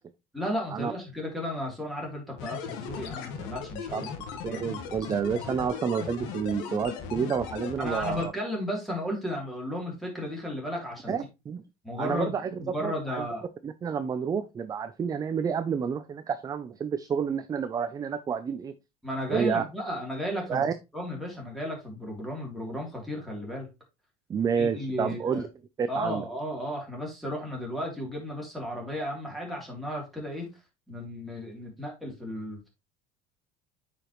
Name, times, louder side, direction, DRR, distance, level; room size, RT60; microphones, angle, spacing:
voice 1, 0.3-4.1 4.5-4.6 7.8-11.2 11.8-12.3 12.6-13.4 19.0-23.7 24.6-25.5 25.9-30.5 30.9-32.7, equal, ahead, 3.1 m, -34 dB
sound 1, 2.4-8.3, left 6 dB, 75° left, 1.5 m, -37 dB
voice 2, 4.4-8.3 11.1-11.6 12.0-13.2 13.6-18.7 19.3-19.6 20.5-20.7 24.3-25.5 25.8-26.2, right 6 dB, 20° right, 0.4 m, -29 dB
8.5 x 5.1 x 3.0 m
cardioid pair, 140°, 18 cm